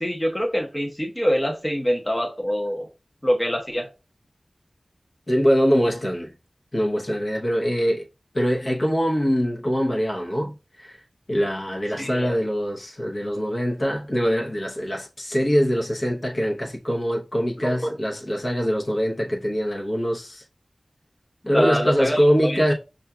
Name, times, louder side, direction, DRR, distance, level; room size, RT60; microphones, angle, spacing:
voice 1, 0.0-2.9 3.2-3.9 12.0-12.3 17.6-17.9 21.4-22.7, equal, 15° left, 0.7 m, -25 dB
voice 2, 5.3-6.3 6.7-8.1 8.3-11.0 11.3-20.4 21.4-22.7, equal, 45° left, 0.8 m, -23 dB
5.6 x 2.4 x 2.3 m
wide cardioid pair, 80°, 0 cm